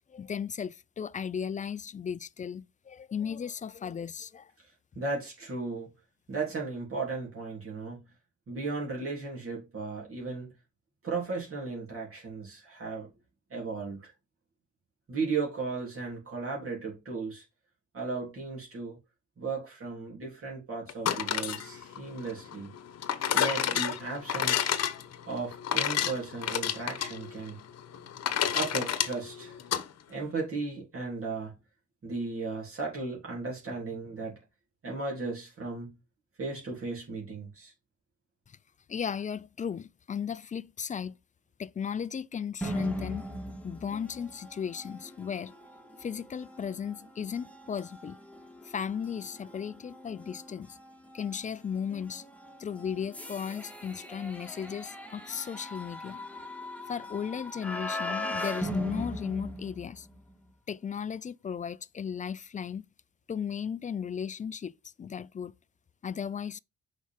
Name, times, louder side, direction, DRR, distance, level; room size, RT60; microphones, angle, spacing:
voice 1, 0.1-4.5 38.9-41.2 41.6-43.2 43.6-45.5 46.0-48.2 48.6-50.8 51.1-52.2 52.6-56.2 56.9-60.1 60.7-62.9 63.3-64.7 65.0-65.5 66.0-66.6, left 7 dB, 25° left, 0.4 m, -35 dB
voice 2, 4.6-5.9 6.3-8.0 8.5-10.5 11.0-13.1 13.5-14.1 15.1-17.4 17.9-19.0 19.4-22.7 23.3-24.7 25.3-27.6 28.5-29.6 30.1-31.5 32.0-34.4 34.8-35.9 36.4-37.7, right 4 dB, 45° right, 3.4 m, -35 dB
sound 1, 20.9-29.8, left 9 dB, 55° left, 1.0 m, -30 dB
sound 2, 42.6-60.3, equal, 5° left, 1.6 m, -40 dB
6.2 x 4.8 x 3.7 m
cardioid pair, 90°, 30 cm